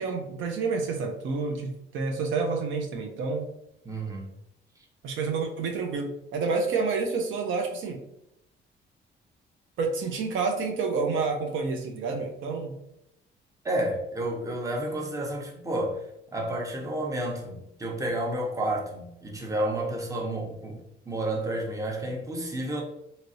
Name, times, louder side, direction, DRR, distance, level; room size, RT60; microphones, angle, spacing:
voice 1, 0.0-3.5 5.0-8.0 9.8-12.8, right 4 dB, 75° right, 3 dB, 0.6 m, -29 dB
voice 2, 3.8-4.3 13.6-16.0 16.3-20.8 21.1-22.8, right 1 dB, 15° right, 0 dB, 0.7 m, -30 dB
3.0 x 2.8 x 2.6 m, 0.80 s
cardioid pair, 90°, 20 cm